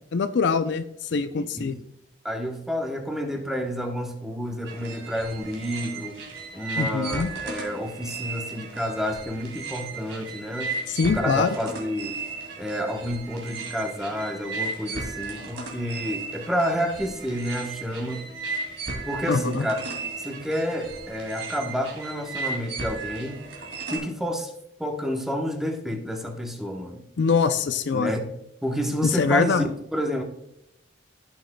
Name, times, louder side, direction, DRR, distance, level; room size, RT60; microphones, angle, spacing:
voice 1, 0.1-1.8 6.8-7.3 10.9-11.5 19.3-19.7 27.2-28.1 29.0-29.6, left 5 dB, 65° left, 11 dB, 0.4 m, -23 dB
voice 2, 1.3-1.7 2.2-6.2 6.5-10.7 11.1-12.2 12.6-18.2 19.1-19.8 20.2-23.4 23.9-24.5 24.8-27.0 27.9-28.3 28.6-30.2, equal, ahead, 2 dB, 1.0 m, -29 dB
sound 1, 4.7-24.0, right 3 dB, 80° right, 2.6 m, -35 dB
15.5 x 6.3 x 2.2 m, 0.77 s
head